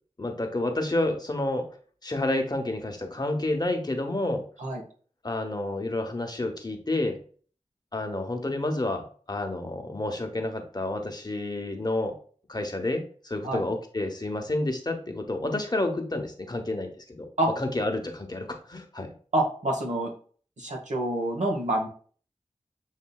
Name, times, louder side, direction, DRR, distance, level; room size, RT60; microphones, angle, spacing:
voice 1, 0.2-1.7 2.0-4.4 5.2-7.2 7.9-12.1 12.5-17.3 17.6-19.1, left 2 dB, 35° left, 4 dB, 0.9 m, -29 dB
voice 2, 19.3-20.1 20.6-21.9, right 1 dB, 85° right, 0 dB, 1.1 m, -27 dB
7.3 x 2.6 x 2.3 m, 0.44 s
cardioid pair, 40°, 12 cm